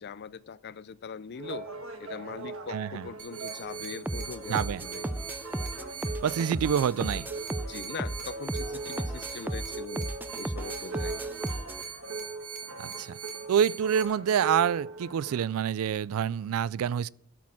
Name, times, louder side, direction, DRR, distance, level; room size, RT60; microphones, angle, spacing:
voice 1, 0.0-1.7 2.0-5.3 7.7-11.3, left 6 dB, 50° left, 0.5 m, -42 dB
sound 1, 1.3-15.5, right 3 dB, 70° right, 1.6 m, -41 dB
voice 2, 2.7-3.1 4.5-4.8 6.2-7.3 12.8-13.2 13.5-17.1, right 8 dB, 85° right, 0.3 m, -27 dB
sound 2, 3.2-14.0, right 6 dB, 40° right, 1.6 m, -42 dB
sound 3, 4.1-11.8, right 1 dB, 10° right, 0.4 m, -35 dB
13.0 x 6.2 x 7.4 m
head